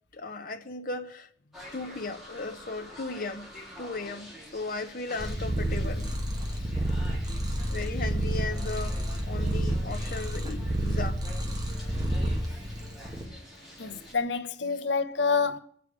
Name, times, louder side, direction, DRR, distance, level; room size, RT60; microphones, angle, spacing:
voice 1, 0.1-1.3 1.7-6.1 6.4-6.7 7.7-11.2, left 3 dB, 50° left, 0.8 m, -36 dB
sound 1, 1.5-14.1, equal, ahead, 3.8 m, -47 dB
Purr, 5.2-13.3, equal, 20° right, 1.9 m, -30 dB
voice 2, 13.8-15.6, left 5 dB, 75° left, 0.9 m, -28 dB
24.0 x 8.2 x 4.9 m
head